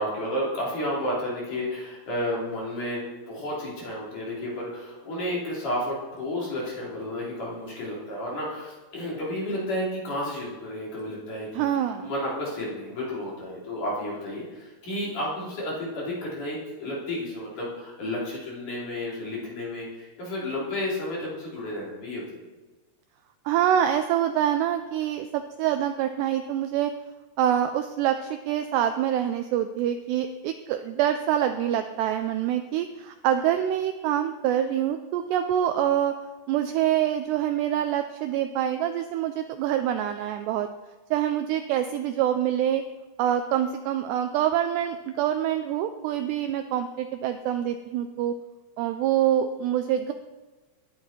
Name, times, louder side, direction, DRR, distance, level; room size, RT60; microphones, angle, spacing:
voice 1, 0.0-11.6 12.0-22.4, left 1 dB, 40° left, -5 dB, 4.9 m, -32 dB
voice 2, 11.5-12.1 23.5-26.9 27.4-36.2 36.5-40.7 41.1-42.8 43.2-48.3 48.8-50.1, right 10 dB, 85° right, 7 dB, 2.4 m, -25 dB
19.0 x 11.5 x 4.5 m, 1.2 s
omnidirectional pair, 5.7 m